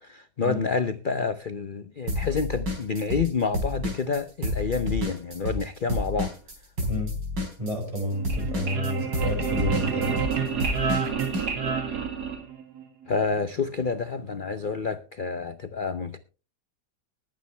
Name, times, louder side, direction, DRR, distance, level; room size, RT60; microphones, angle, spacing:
voice 1, 0.0-6.3 13.1-16.2, left 5 dB, 65° left, 0.5 m, -28 dB
sound 1, 2.1-3.3 3.5-11.5, left 1 dB, 80° right, 4.8 m, -30 dB
voice 2, 7.6-10.2, equal, 15° right, 5.6 m, -30 dB
sound 2, 8.1-12.8, right 6 dB, 65° right, 2.6 m, -29 dB
20.5 x 9.1 x 3.3 m
omnidirectional pair, 1.9 m